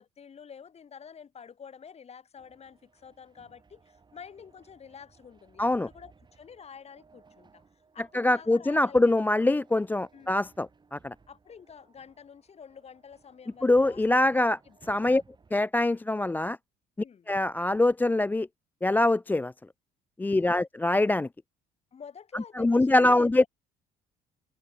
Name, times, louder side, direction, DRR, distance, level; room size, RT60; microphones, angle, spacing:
voice 1, 0.0-7.6 7.9-9.6 10.1-10.3 11.3-15.1 17.0-17.3 20.2-20.6 21.9-23.5, left 7 dB, 40° left, 5.1 m, -49 dB
sound 1, 2.4-15.5, right 4 dB, 25° right, 6.5 m, -61 dB
voice 2, 8.1-11.1 13.6-14.6 14.9-15.2 15.5-16.6 17.3-18.5 18.8-19.5 20.2-21.3 22.3-23.4, left 2 dB, 10° left, 0.5 m, -24 dB
cardioid pair, 110°, 17 cm